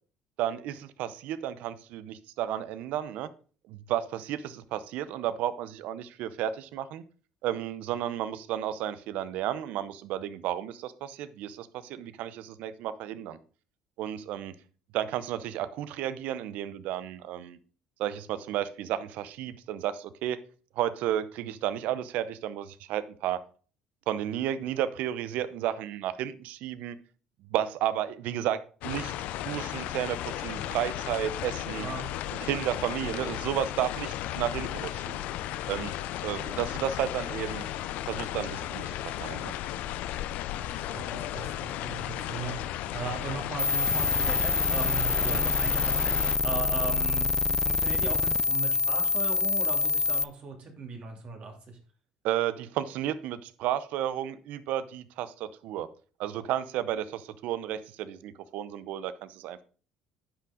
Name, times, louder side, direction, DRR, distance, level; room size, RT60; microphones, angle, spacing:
voice 1, 0.4-3.3 3.7-7.0 7.4-13.4 14.0-14.5 14.9-17.6 18.0-20.4 20.8-23.4 24.1-27.0 27.5-29.1 29.4-31.9 32.4-35.2 35.7-35.9 36.2-37.7 38.1-39.5 45.3-45.4 52.2-55.9 56.2-59.6, right 11 dB, 70° right, 15 dB, 0.7 m, -32 dB
sound 1, 28.8-46.4, left 13 dB, 70° left, 0.5 m, -35 dB
voice 2, 40.6-51.8, right 4 dB, 50° right, 3 dB, 2.7 m, -38 dB
sound 2, 43.6-50.2, left 4 dB, 20° left, 0.5 m, -26 dB
9.8 x 5.9 x 3.8 m, 0.39 s
supercardioid pair, 80°, 3 cm